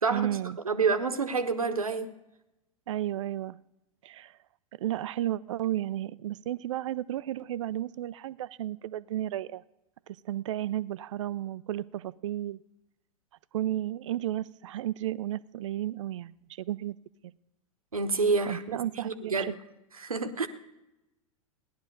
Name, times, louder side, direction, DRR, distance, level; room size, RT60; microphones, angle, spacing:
voice 1, 0.1-0.6 2.9-3.6 4.0-4.4 4.8-9.6 10.1-12.6 13.5-17.0 17.2-17.3 18.5-19.5, right 13 dB, 60° right, 18 dB, 0.5 m, -33 dB
voice 2, 0.6-2.1 17.9-18.6 19.0-19.5 20.0-20.5, right 4 dB, 80° right, 10 dB, 1.1 m, -28 dB
17.0 x 11.5 x 5.3 m, 0.93 s
figure-of-eight pair, 95°, 18 cm